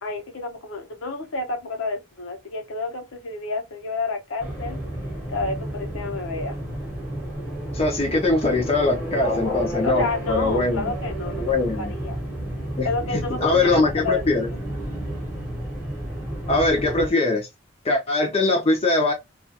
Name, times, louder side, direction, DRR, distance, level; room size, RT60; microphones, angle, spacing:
voice 1, 0.0-4.8 5.3-6.6 9.8-12.2 12.8-14.2, left 3 dB, 85° left, 0.7 m, -30 dB
sound 1, 4.4-17.1, right 1 dB, 10° right, 0.8 m, -31 dB
voice 2, 7.7-10.9 11.4-11.9 12.8-12.9 13.1-14.5 16.5-17.5 17.8-19.1, left 2 dB, 30° left, 0.5 m, -22 dB
2.3 x 2.3 x 2.6 m
head